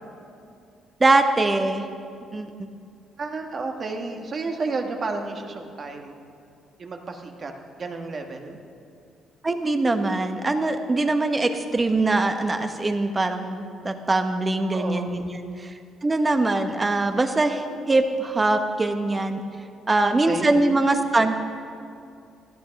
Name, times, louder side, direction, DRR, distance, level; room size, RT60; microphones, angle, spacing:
voice 1, 1.0-1.9 2.3-2.5 9.4-15.7 16.0-19.4 19.9-21.4, right 2 dB, 25° right, 7 dB, 1.2 m, -22 dB
voice 2, 3.2-6.2 6.8-7.5 7.8-8.6 14.7-15.2 20.0-20.5, right 3 dB, 45° right, 3 dB, 1.7 m, -31 dB
16.5 x 11.5 x 5.4 m, 2.5 s
cardioid pair, 75°, 0 cm